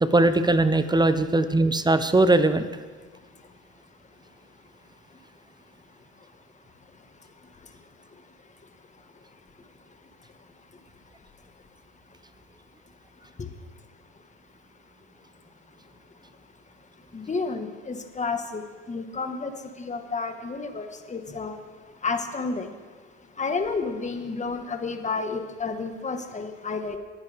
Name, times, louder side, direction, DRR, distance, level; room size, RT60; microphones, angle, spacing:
voice 1, 0.0-2.7, right 2 dB, 15° right, 12 dB, 0.8 m, -20 dB
voice 2, 17.1-18.6 18.9-19.5 19.8-21.6 22.0-22.7 23.4-27.0, left 4 dB, 20° left, 6 dB, 1.6 m, -30 dB
20.5 x 9.0 x 3.6 m, 1.4 s
hypercardioid pair, 70°, 33 cm